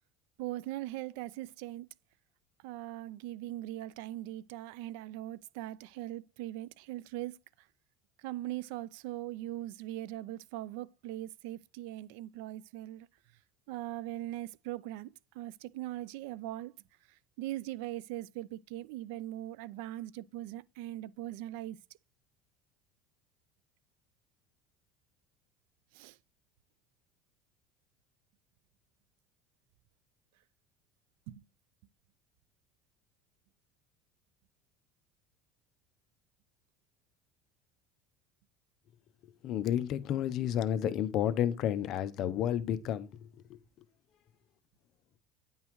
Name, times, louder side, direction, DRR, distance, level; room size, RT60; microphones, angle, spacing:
voice 1, 0.4-1.9 2.6-7.7 8.2-13.1 13.7-16.7 17.1-21.8 25.9-26.2 31.3-31.4, right 15 dB, 80° right, 0.4 m, -40 dB
voice 2, 39.4-43.6, left 10 dB, 50° left, 0.7 m, -31 dB
9.6 x 5.5 x 3.1 m
cardioid pair, 145°, 0 cm